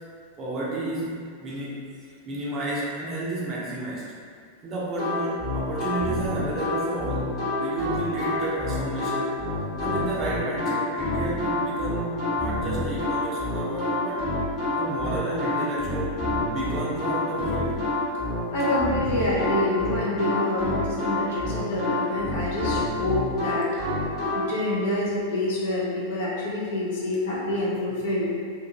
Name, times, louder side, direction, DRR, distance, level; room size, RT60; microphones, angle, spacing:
voice 1, 0.4-1.1 1.4-4.0 4.6-7.3 7.6-9.3 9.8-14.3 14.8-16.2 16.5-17.8, right 2 dB, 30° right, -6 dB, 0.5 m, -31 dB
sound 1, 5.0-24.4, left 2 dB, 35° left, 1.2 m, -27 dB
voice 2, 18.5-23.7 24.3-28.3, left 1 dB, 55° left, -6 dB, 0.7 m, -27 dB
2.5 x 2.4 x 2.8 m, 2.2 s
figure-of-eight pair, 90°, 0 cm